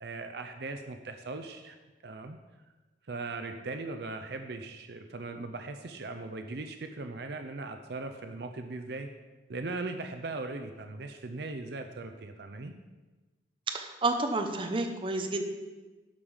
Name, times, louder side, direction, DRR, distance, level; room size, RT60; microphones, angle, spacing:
voice 1, 0.0-1.8 2.0-2.4 3.1-9.1 9.5-12.7, right 3 dB, 60° right, 7 dB, 0.6 m, -39 dB
voice 2, 13.7-15.4, right 2 dB, 30° right, 5 dB, 0.8 m, -30 dB
11.5 x 5.1 x 5.6 m, 1.2 s
head